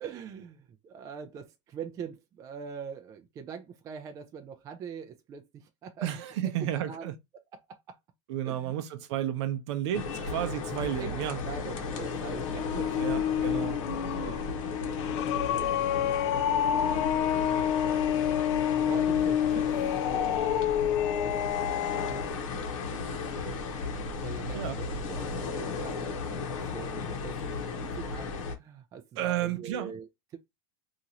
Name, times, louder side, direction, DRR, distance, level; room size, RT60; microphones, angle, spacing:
voice 1, 0.0-7.1 7.7-8.0 8.4-8.7 10.2-10.3 11.0-13.2 14.1-15.7 16.1-16.3 16.9-17.2 17.4-17.6 18.8-20.4 21.1-22.3 23.4-23.7 24.2-27.4 27.8-30.4, right 7 dB, 20° right, 0.4 m, -43 dB
voice 2, 6.0-7.1 8.3-11.4 13.0-13.8 17.5-17.7 24.5-24.8 29.2-29.9, right 11 dB, 60° right, 0.6 m, -32 dB
sound 1, 9.9-28.6, left 4 dB, 80° left, 0.9 m, -35 dB
sound 2, 11.8-22.3, left 10 dB, 60° left, 0.4 m, -28 dB
2.9 x 2.5 x 2.7 m
supercardioid pair, 150°, 17 cm